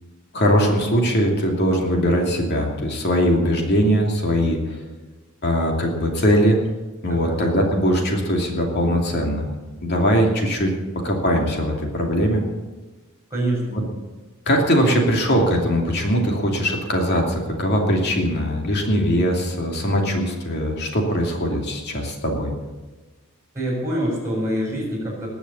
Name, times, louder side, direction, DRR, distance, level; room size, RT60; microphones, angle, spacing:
voice 1, 0.3-4.8 5.4-6.6 7.0-9.5 9.8-10.7 11.0-12.4 14.5-22.5, equal, 50° left, 0 dB, 2.7 m, -21 dB
voice 2, 13.3-13.8 23.5-25.3, right 1 dB, 15° right, -2 dB, 7.0 m, -25 dB
20.5 x 7.2 x 8.6 m, 1.2 s
head